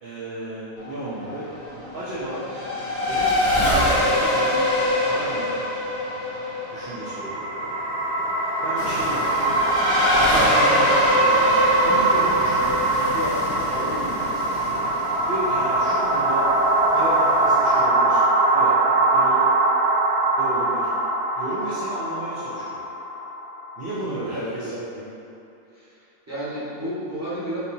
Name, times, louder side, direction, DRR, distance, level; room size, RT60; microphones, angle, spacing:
voice 1, 0.0-1.4 1.9-2.4 3.1-5.7 6.7-7.5 8.6-9.6 10.2-11.5 11.8-14.8 15.3-16.5 16.9-18.2 18.5-19.4 20.4-20.9 21.3-22.8 23.8-25.1, right 1 dB, 55° right, -10 dB, 0.6 m, -33 dB
Race car auto racing / Accelerating revving vroom, 0.8-14.8, left 1 dB, 40° left, 0.6 m, -24 dB
sound 1, 6.7-23.9, right 2 dB, 85° right, 1.1 m, -22 dB
sound 2, 8.8-17.9, left 2 dB, 75° left, 1.1 m, -35 dB
voice 2, 24.1-24.5 25.7-25.9 26.3-27.6, equal, 10° right, -13 dB, 1.3 m, -32 dB
4.1 x 3.6 x 2.7 m, 2.8 s
omnidirectional pair, 1.6 m